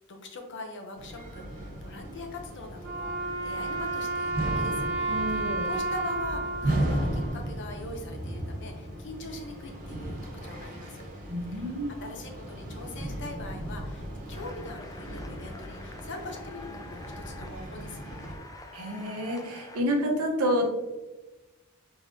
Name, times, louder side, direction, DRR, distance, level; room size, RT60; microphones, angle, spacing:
voice 1, 0.1-4.9 5.3-11.0 11.5-11.7 12.0-18.1, left 2 dB, 55° left, 3 dB, 0.7 m, -42 dB
sound 1, 1.0-18.4, right 1 dB, 40° right, 1.3 m, -36 dB
Wind instrument woodwind instrument, 2.8-8.0, right 2 dB, 60° right, 1.3 m, -32 dB
voice 2, 5.1-5.7 11.3-11.9 18.7-20.7, equal, 75° right, 1 dB, 1.0 m, -29 dB
sound 2, 14.3-19.8, left 2 dB, 15° left, 0.3 m, -47 dB
4.7 x 3.5 x 2.7 m, 1.1 s
head